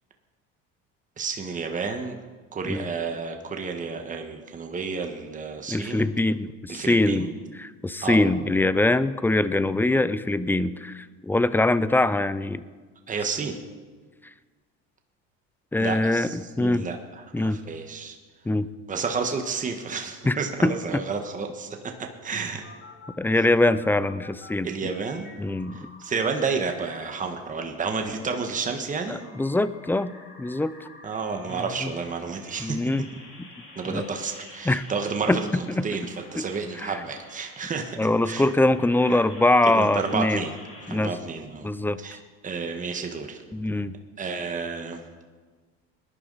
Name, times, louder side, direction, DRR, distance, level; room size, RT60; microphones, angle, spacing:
voice 1, 1.2-2.1 2.5-6.1 6.7-7.3 8.0-8.2 13.1-13.6 15.8-17.0 17.4-18.2 18.9-21.9 22.2-22.6 23.4-23.5 24.6-25.3 25.7-29.2 31.0-32.8 33.7-38.0 38.2-38.5 39.1-39.2 39.7-40.5 40.9-41.7 42.0-43.4 44.2-45.0, right 5 dB, 25° right, 4 dB, 1.5 m, -31 dB
voice 2, 5.7-7.3 7.6-12.6 15.7-16.9 17.3-17.6 18.5-18.7 20.3-21.0 23.2-24.7 25.4-25.9 29.1-30.1 30.4-30.9 31.5-31.9 32.6-33.0 33.4-33.5 33.9-34.0 34.7-34.8 35.3-35.4 35.7-35.9 36.4-36.5 36.8-36.9 38.0-40.4 40.9-41.1 41.6-42.0 43.5-43.9, left 2 dB, 5° left, 15 dB, 0.4 m, -23 dB
sound 1, 21.9-24.5 24.8-27.4 27.8-40.9, left 2 dB, 45° left, 4.7 m, -49 dB
20.0 x 11.0 x 4.1 m, 1.4 s
supercardioid pair, 105°, 31 cm